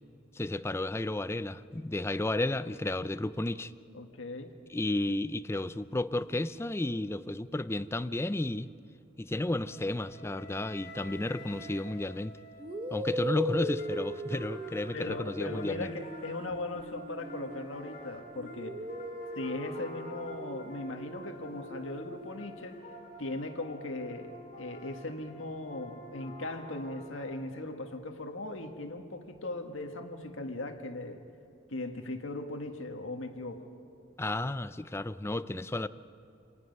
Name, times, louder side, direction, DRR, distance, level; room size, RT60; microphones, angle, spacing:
voice 1, 0.3-3.7 4.7-8.7 9.2-12.3 12.9-15.9 34.2-35.9, left 2 dB, 15° left, 13 dB, 0.4 m, -32 dB
voice 2, 3.9-4.5 14.9-18.8 19.4-22.8 23.2-31.2 31.7-33.6, left 2 dB, 90° left, 5 dB, 1.7 m, -38 dB
Wind instrument woodwind instrument, 9.6-13.7, left 1 dB, 60° left, 1.9 m, -50 dB
sound 1, 11.5-11.8 12.6-17.9 18.3-22.3, right 1 dB, 25° right, 1.2 m, -39 dB
sound 2, 13.8-27.6, left 1 dB, 40° left, 7.0 m, -49 dB
26.5 x 19.0 x 5.4 m, 2.6 s
head